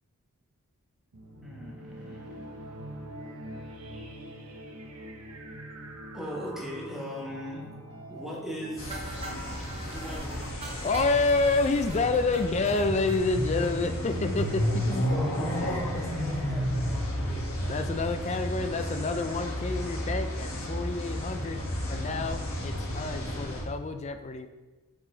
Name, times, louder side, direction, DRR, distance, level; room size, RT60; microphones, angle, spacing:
sound 1, 1.1-11.3, right 1 dB, 85° right, 0.8 m, -45 dB
voice 1, 1.4-2.7 6.1-7.7 8.1-9.2 9.7-10.6 14.8-17.6, equal, ahead, -4 dB, 1.3 m, -40 dB
sound 2, 8.8-23.6, equal, 65° left, 1.6 m, -32 dB
sound 3, 8.9-13.2 13.6-13.7 14.0-14.1 14.4-14.5 14.8-14.9, right 2 dB, 25° right, 0.7 m, -42 dB
voice 2, 10.8-15.1 17.6-21.6 21.9-24.5, left 3 dB, 30° left, 8 dB, 0.4 m, -28 dB
5.9 x 4.8 x 3.9 m, 1.2 s
head